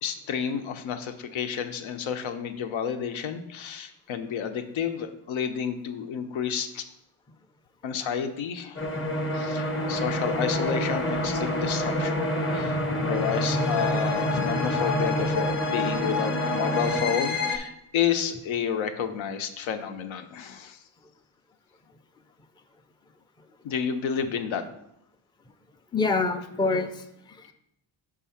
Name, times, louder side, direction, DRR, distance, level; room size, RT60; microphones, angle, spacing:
voice 1, 0.0-6.9 7.8-8.8 9.3-20.8 23.6-24.6, left 7 dB, 80° left, 8 dB, 0.8 m, -30 dB
sound 1, 8.8-17.6, left 1 dB, 25° left, 0.8 m, -27 dB
voice 2, 25.9-27.5, left 3 dB, 10° left, 6 dB, 0.4 m, -27 dB
5.6 x 3.7 x 5.6 m, 0.80 s
cardioid pair, 125°, 46 cm